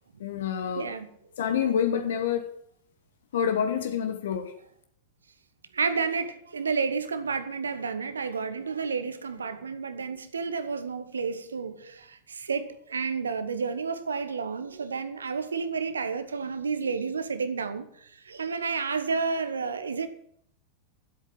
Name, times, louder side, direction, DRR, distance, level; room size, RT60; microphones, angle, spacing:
voice 1, 0.2-0.9 1.4-2.5 3.3-4.5, left 8 dB, 60° left, 1.0 m, -27 dB
voice 2, 0.7-1.1 5.7-20.1, right 5 dB, 70° right, 1.1 m, -31 dB
12.5 x 8.3 x 7.7 m
figure-of-eight pair, 90°, 0 cm